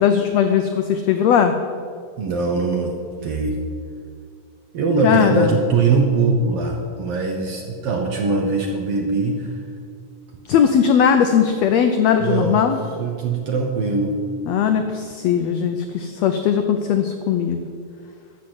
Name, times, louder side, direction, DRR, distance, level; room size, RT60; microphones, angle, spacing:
voice 1, 0.0-1.5 5.0-5.5 10.5-12.8 14.5-17.6, left 8 dB, 85° left, 7 dB, 1.5 m, -18 dB
voice 2, 2.2-2.9 3.2-3.6 4.7-9.6 12.2-12.7 13.0-14.2, right 3 dB, 65° right, 2 dB, 1.5 m, -21 dB
13.0 x 6.5 x 7.9 m, 2.2 s
omnidirectional pair, 3.8 m